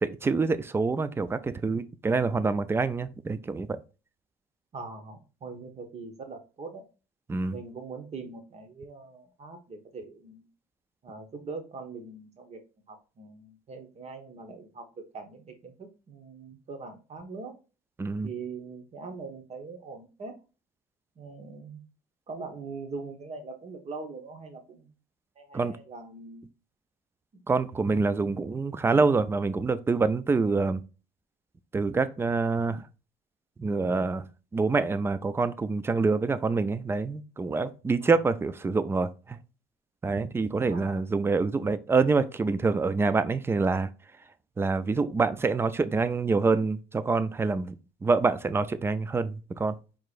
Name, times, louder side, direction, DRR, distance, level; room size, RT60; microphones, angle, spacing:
voice 1, 0.0-3.8 7.3-7.5 18.0-18.3 25.5-25.7 27.5-30.8 31.7-32.8 33.6-34.2 34.5-39.4 40.0-43.9 44.6-47.7 48.0-49.7, right 4 dB, 15° right, 0.3 m, -26 dB
voice 2, 4.7-6.9 7.5-10.5 11.0-12.6 12.9-17.6 18.2-20.3 21.2-21.8 22.3-24.9 25.4-26.5 28.2-28.7 38.0-38.1 40.6-41.0, right 4 dB, 40° right, 1.0 m, -42 dB
4.8 x 3.7 x 2.5 m
cardioid pair, 110°, 17 cm